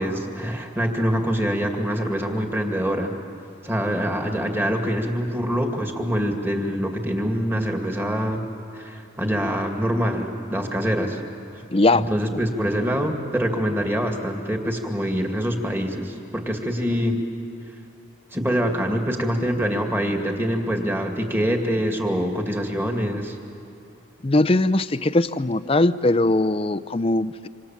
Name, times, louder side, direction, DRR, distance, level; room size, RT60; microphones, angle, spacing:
voice 1, 0.0-3.1 3.6-8.4 8.7-11.2 11.9-17.2 18.3-23.4, equal, 10° right, 3 dB, 2.3 m, -25 dB
voice 2, 11.7-12.1 24.2-27.5, left 2 dB, 30° left, 14 dB, 0.6 m, -20 dB
27.0 x 26.5 x 7.3 m, 2.9 s
head